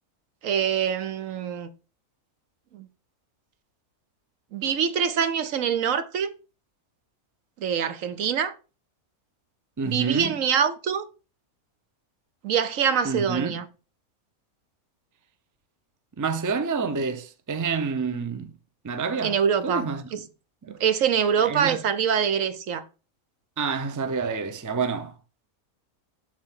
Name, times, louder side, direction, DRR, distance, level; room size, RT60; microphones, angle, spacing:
voice 1, 0.4-1.7 2.7-2.9 4.5-6.3 7.6-8.5 9.8-11.0 12.4-13.7 19.2-20.2 20.8-22.8, right 7 dB, 65° right, 1.1 m, -24 dB
voice 2, 9.8-10.3 13.0-13.5 16.2-18.5 18.8-19.3 19.6-20.0 20.6-20.8 21.5-21.8 23.6-25.1, right 5 dB, 20° right, 0.5 m, -28 dB
7.6 x 6.5 x 3.7 m
omnidirectional pair, 1.5 m